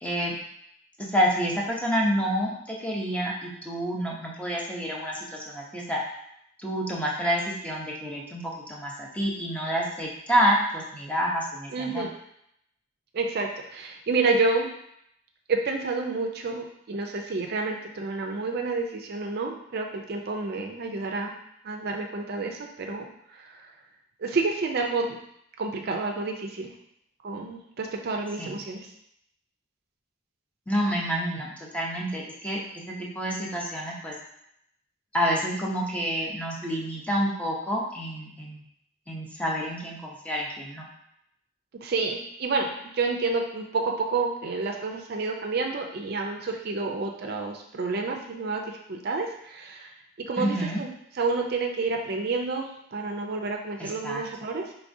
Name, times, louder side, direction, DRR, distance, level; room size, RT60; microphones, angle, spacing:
voice 1, 0.0-0.4 1.0-6.0 6.6-8.4 8.7-12.0 28.4-28.6 30.7-34.1 35.1-38.6 39.1-40.9 50.4-50.8 53.8-54.3, equal, 5° left, -3 dB, 0.6 m, -28 dB
voice 2, 11.7-12.1 13.1-14.7 15.5-21.3 21.6-23.0 23.3-23.6 24.2-25.2 25.6-26.7 27.2-28.8 41.8-48.6 48.9-49.9 50.3-50.9 51.1-54.6, right 3 dB, 50° right, 2 dB, 0.4 m, -29 dB
4.7 x 3.2 x 2.6 m, 0.75 s
head